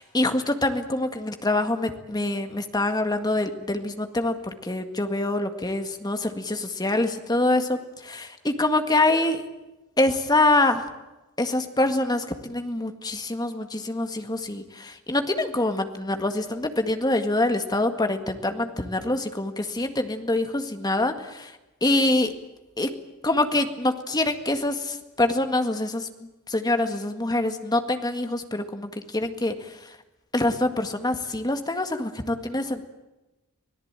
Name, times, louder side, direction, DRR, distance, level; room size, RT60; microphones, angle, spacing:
voice 1, 0.0-8.1 8.6-9.4 10.0-10.9 11.4-21.5 21.8-22.3 22.8-22.9 23.2-26.1 26.5-29.9 30.3-32.8, left 2 dB, 20° left, 7 dB, 1.8 m, -25 dB
25.5 x 18.0 x 8.9 m, 1.0 s
head